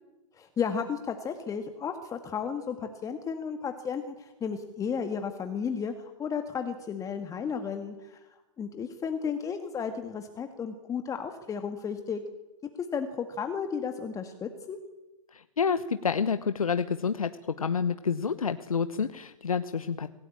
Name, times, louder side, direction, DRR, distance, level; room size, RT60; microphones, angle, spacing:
voice 1, 0.3-12.2 12.8-14.8, left 6 dB, 20° left, 6 dB, 1.8 m, -33 dB
voice 2, 15.3-20.1, left 6 dB, 85° left, 11 dB, 1.0 m, -29 dB
26.5 x 17.0 x 8.7 m, 1.0 s
hypercardioid pair, 115°, 18 cm